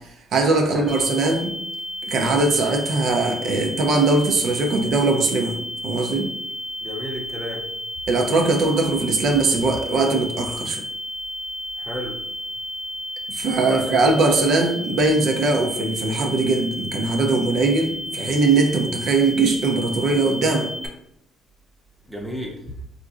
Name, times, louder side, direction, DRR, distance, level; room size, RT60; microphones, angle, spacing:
voice 1, 0.3-1.5 2.1-5.6 5.8-6.3 8.1-10.8 13.3-20.7, right 3 dB, 65° right, 2 dB, 0.5 m, -20 dB
sound 1, 0.9-20.9, left 1 dB, 15° left, 0.9 m, -32 dB
voice 2, 6.8-7.6 11.8-12.2 13.7-14.0 22.1-22.6, equal, 5° right, 0 dB, 0.7 m, -32 dB
3.7 x 2.5 x 2.4 m, 0.75 s
cardioid pair, 90°, 0 cm